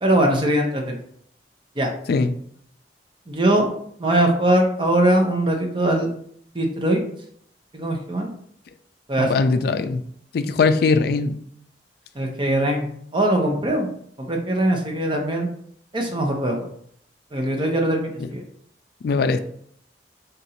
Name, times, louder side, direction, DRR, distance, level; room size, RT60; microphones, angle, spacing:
voice 1, 0.0-1.0 1.8-1.9 3.3-3.7 4.0-6.1 6.5-7.0 7.7-8.3 9.1-9.3 12.2-12.9 13.1-13.9 14.2-15.5 15.9-16.6 17.3-18.4, right 1 dB, 30° right, 2 dB, 0.7 m, -21 dB
voice 2, 9.2-10.0 10.3-11.4 19.0-19.4, left 4 dB, 60° left, 9 dB, 0.3 m, -20 dB
3.9 x 2.5 x 4.2 m, 0.65 s
head